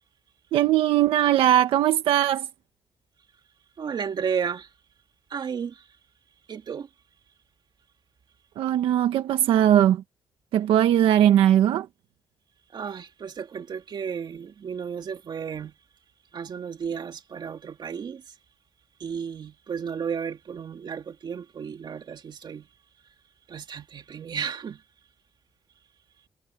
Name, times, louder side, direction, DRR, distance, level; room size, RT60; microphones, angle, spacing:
voice 1, 0.5-2.5 8.6-10.0 10.5-11.9, right 11 dB, 90° right, 1.6 m, -20 dB
voice 2, 3.8-4.7 5.3-5.8 6.5-6.9 12.7-15.7 16.3-18.3 19.0-22.7 23.5-24.8, right 7 dB, 55° right, 2.6 m, -33 dB
cardioid pair, 80°, 9 cm